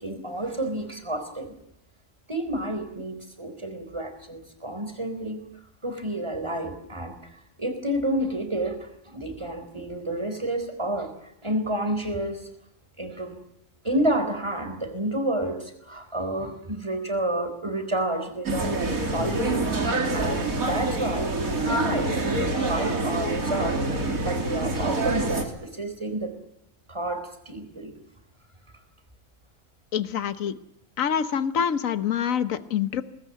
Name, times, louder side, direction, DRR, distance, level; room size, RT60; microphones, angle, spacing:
voice 1, 0.0-1.5 2.3-5.4 5.8-7.2 7.6-8.8 9.1-11.1 11.4-12.4 13.0-13.3 13.8-18.7 19.1-19.7 20.1-21.3 21.6-23.8 24.2-25.4 25.8-26.3 26.9-27.9, right 1 dB, 20° right, 7 dB, 4.1 m, -29 dB
sound 1, 18.4-25.4, right 2 dB, 85° right, 3.4 m, -26 dB
voice 2, 29.9-30.6 31.0-33.0, left 8 dB, 70° left, 12 dB, 1.5 m, -26 dB
24.0 x 19.5 x 9.3 m, 0.82 s
omnidirectional pair, 1.4 m